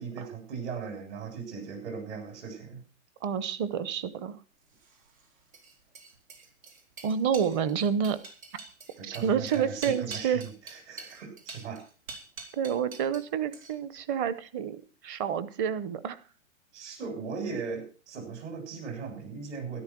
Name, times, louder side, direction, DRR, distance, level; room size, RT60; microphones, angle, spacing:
voice 1, 0.0-2.8 9.0-11.8 16.7-19.8, right 5 dB, 60° right, 5 dB, 7.9 m, -38 dB
voice 2, 3.2-4.4 7.0-8.2 9.0-10.4 12.5-16.2, right 7 dB, 25° right, 16 dB, 0.8 m, -29 dB
sound 1, 4.7-13.3 13.5-14.0, right 4 dB, 90° right, 4.7 m, -46 dB
13.0 x 11.5 x 6.1 m, 0.38 s
hypercardioid pair, 150°, 40 cm